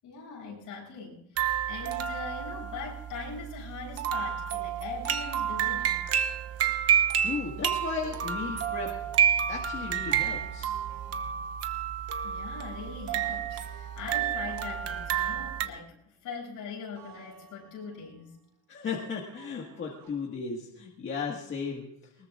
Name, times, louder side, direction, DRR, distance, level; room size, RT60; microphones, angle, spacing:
voice 1, 0.0-6.1 12.2-16.0 16.2-18.4, left 5 dB, 55° left, -2 dB, 7.8 m, -41 dB
sound 1, 1.4-15.7, right 9 dB, 40° right, 1.1 m, -30 dB
voice 2, 7.2-8.9 9.5-10.7 18.7-21.9, left 5 dB, 30° left, -1 dB, 1.8 m, -35 dB
sound 2, 10.7-12.1 13.5-15.9 16.9-18.4 19.3-20.1, right 4 dB, 85° right, 6.7 m, -54 dB
23.0 x 21.0 x 2.5 m, 0.80 s
cardioid pair, 165°, 38 cm